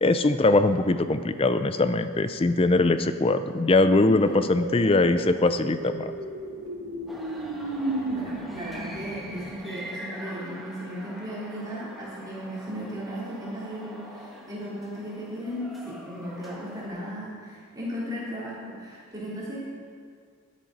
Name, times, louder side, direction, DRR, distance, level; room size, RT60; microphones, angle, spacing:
voice 1, 0.0-6.1, left 2 dB, 25° left, 11 dB, 0.4 m, -22 dB
voice 2, 4.0-4.4 4.8-5.4 8.1-19.6, equal, 15° right, -8 dB, 3.3 m, -36 dB
sound 1, 4.5-9.5, right 2 dB, 85° right, 1.6 m, -34 dB
sound 2, 7.1-16.9, equal, ahead, 1.2 m, -43 dB
12.0 x 10.5 x 5.3 m, 2.1 s
head